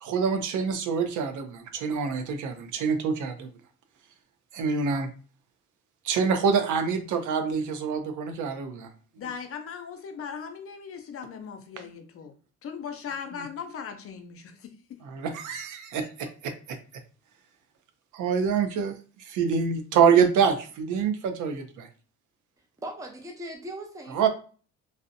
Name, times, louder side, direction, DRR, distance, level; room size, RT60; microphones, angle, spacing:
voice 1, 0.0-3.5 4.5-5.1 6.0-8.9 13.4-13.5 15.1-16.8 18.1-21.9 24.1-24.3, right 6 dB, 80° right, 8 dB, 0.5 m, -26 dB
voice 2, 9.2-12.3 12.6-14.7, left 6 dB, 50° left, 6 dB, 0.5 m, -38 dB
voice 3, 22.8-24.3, right 1 dB, 10° right, 2 dB, 0.5 m, -39 dB
2.6 x 2.0 x 2.5 m, 0.39 s
cardioid pair, 90°, 30 cm